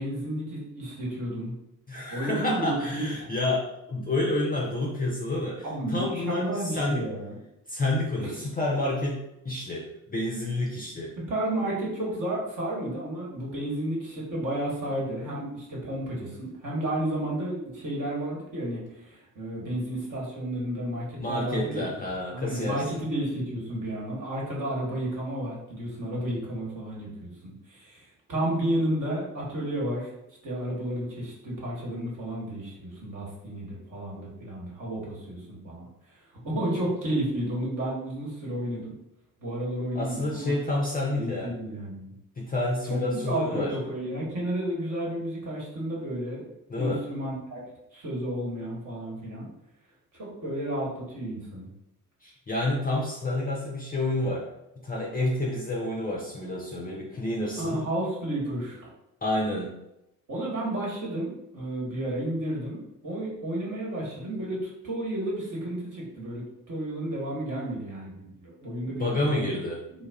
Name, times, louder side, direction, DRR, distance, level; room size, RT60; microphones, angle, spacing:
voice 1, 0.0-1.5 2.1-3.0 5.6-7.4 8.2-8.4 11.2-21.8 22.3-30.1 30.4-36.2 36.4-38.9 39.4-40.6 41.2-42.1 42.9-46.4 46.8-47.6 47.9-49.5 50.1-51.7 57.6-58.9 60.3-69.6 70.0-70.1, right 1 dB, 40° right, -4 dB, 1.3 m, -32 dB
voice 2, 1.9-6.5 6.7-7.0 7.7-11.1 21.2-23.0 39.9-41.5 42.4-43.8 46.7-47.0 52.2-54.5 54.8-57.8 59.2-59.7 68.9-69.8, left 2 dB, 20° left, -2 dB, 0.5 m, -29 dB
2.3 x 2.1 x 3.4 m, 0.86 s
figure-of-eight pair, 50°, 45 cm